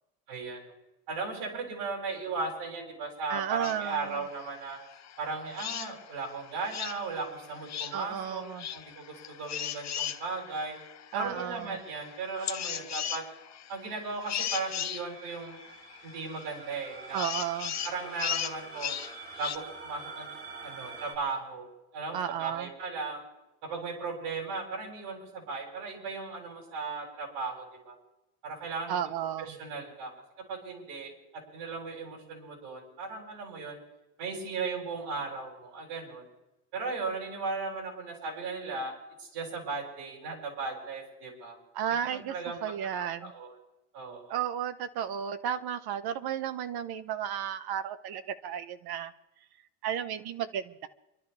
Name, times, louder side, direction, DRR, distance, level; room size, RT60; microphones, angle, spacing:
voice 1, 0.3-0.7 1.1-4.8 5.2-8.4 8.7-10.8 11.1-13.2 13.7-15.6 16.0-17.3 17.8-19.0 19.4-20.3 20.6-21.7 21.9-23.2 23.6-28.0 28.4-29.0 29.4-30.1 30.5-33.8 34.2-36.3 36.7-38.9 39.2-41.6 42.0-42.6 43.0-43.6 43.9-44.4, right 4 dB, 80° right, -2 dB, 7.5 m, -37 dB
voice 2, 3.3-4.2 7.9-8.7 11.1-11.8 17.1-17.7 22.1-22.7 28.9-29.6 41.7-42.3 42.6-43.3 44.3-49.1 49.8-50.9, right 9 dB, 65° right, 10 dB, 1.4 m, -33 dB
sound 1, 3.6-19.6, left 10 dB, 40° left, 1.0 m, -38 dB
sound 2, 14.5-21.1, right 4 dB, 25° right, 3.3 m, -46 dB
27.5 x 12.5 x 3.5 m, 0.95 s
cardioid pair, 140°, 41 cm